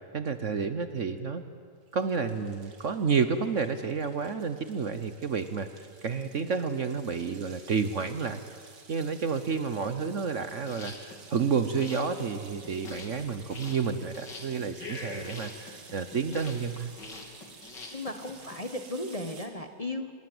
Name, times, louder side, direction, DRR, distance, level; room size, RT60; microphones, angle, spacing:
voice 1, 0.1-1.4 1.9-8.4 8.9-16.9, right 5 dB, 50° right, 10 dB, 1.2 m, -30 dB
sound 1, 1.9-19.5, right 4 dB, 90° right, 2.9 m, -53 dB
sound 2, 10.7-18.6, left 3 dB, 90° left, 3.5 m, -44 dB
voice 2, 17.9-20.1, left 1 dB, 25° left, 6 dB, 1.2 m, -35 dB
26.0 x 21.0 x 7.9 m, 2.1 s
omnidirectional pair, 1.8 m